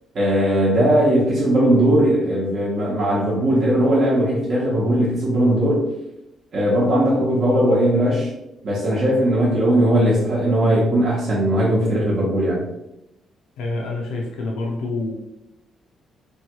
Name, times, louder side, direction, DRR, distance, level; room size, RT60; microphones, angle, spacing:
voice 1, 0.1-5.9 6.5-8.3 8.6-12.6, right 1 dB, 55° right, -7 dB, 0.8 m, -18 dB
voice 2, 13.6-15.1, left 2 dB, 85° left, -1 dB, 0.5 m, -27 dB
3.1 x 2.2 x 2.9 m, 0.89 s
cardioid pair, 90°, 0 cm